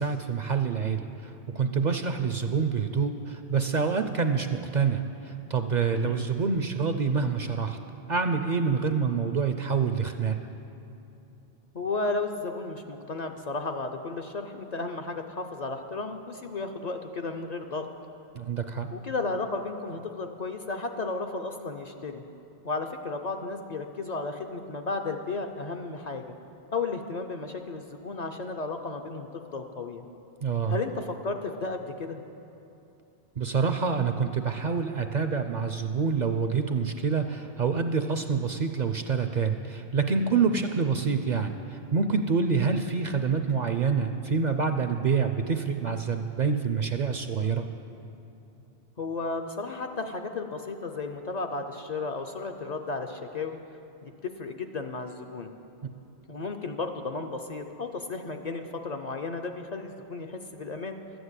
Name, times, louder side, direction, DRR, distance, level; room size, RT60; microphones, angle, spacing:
voice 1, 0.0-7.8 8.1-10.5 18.3-18.9 30.4-30.8 33.4-47.7, right 5 dB, 55° right, 7 dB, 0.6 m, -27 dB
voice 2, 5.9-6.2 11.7-17.9 18.9-22.2 22.6-26.3 26.7-30.1 30.7-32.2 49.0-53.6 54.0-55.5 56.3-61.0, left 3 dB, 50° left, 4 dB, 0.6 m, -34 dB
12.5 x 7.9 x 8.1 m, 2.8 s
omnidirectional pair, 1.1 m